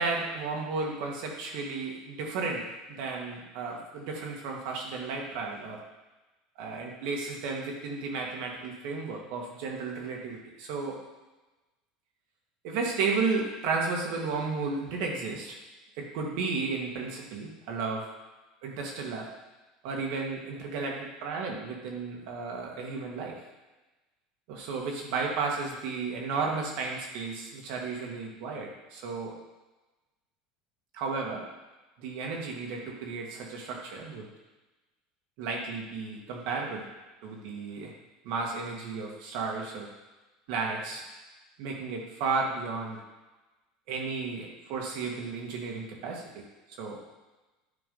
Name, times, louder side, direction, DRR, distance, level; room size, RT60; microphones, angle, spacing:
voice 1, 0.0-2.6 3.0-5.8 6.6-11.0 12.6-15.5 16.0-18.0 18.6-19.3 19.8-23.4 24.5-29.3 30.9-31.4 32.0-34.3 35.4-36.8 37.2-37.9 38.2-39.9 40.5-41.0 41.6-43.0 43.9-46.4 46.8-47.0, right 4 dB, 70° right, 0 dB, 1.8 m, -33 dB
9.8 x 3.5 x 5.4 m, 1.1 s
supercardioid pair, 130°, 0 cm